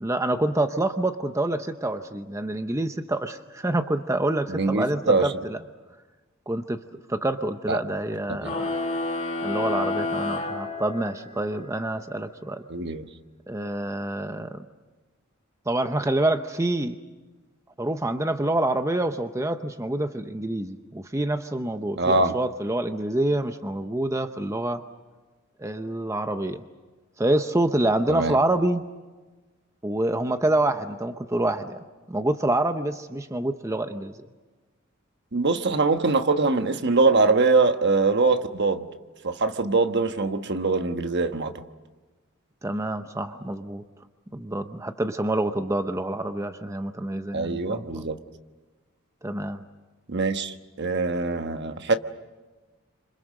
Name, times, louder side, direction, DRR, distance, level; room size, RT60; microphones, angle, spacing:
voice 1, 0.0-5.6 6.5-6.8 7.1-8.7 9.4-12.6 13.5-14.6 15.7-17.0 17.8-24.8 25.6-26.6 27.2-28.8 29.8-31.8 32.1-34.3 42.6-43.8 44.3-48.1 49.2-49.6, right 1 dB, 15° right, 8 dB, 0.8 m, -27 dB
voice 2, 4.5-5.3 7.7-7.8 8.4-8.5 12.7-13.1 22.0-22.3 28.1-28.4 35.3-38.9 39.2-41.5 47.3-48.2 50.1-51.9, right 3 dB, 55° right, 8 dB, 1.2 m, -23 dB
sound 1, 8.4-11.4, left 2 dB, 35° left, 3.0 m, -29 dB
28.5 x 26.5 x 6.5 m, 1.2 s
head